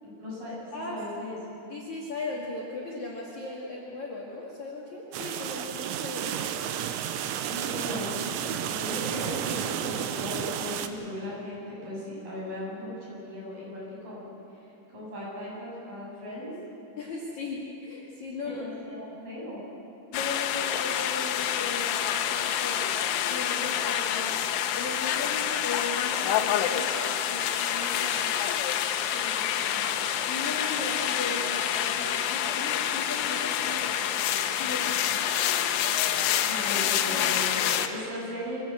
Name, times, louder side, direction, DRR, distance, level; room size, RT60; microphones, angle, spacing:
voice 1, 0.0-1.4 7.5-14.6 14.9-16.5 18.4-19.6 27.8-28.4 29.1-29.9 36.5-38.7, left 1 dB, 45° right, -6 dB, 9.2 m, -38 dB
voice 2, 1.7-6.5 17.0-18.7 20.1-22.9 23.3-28.0 28.5-28.6 30.3-35.2, left 3 dB, 45° left, -3 dB, 2.9 m, -37 dB
sound 1, 5.1-10.9, right 10 dB, 85° right, 3.4 m, -32 dB
sound 2, 20.1-37.9, left 10 dB, 90° left, 3.4 m, -27 dB
25.0 x 17.0 x 8.0 m, 2.9 s
omnidirectional pair, 5.5 m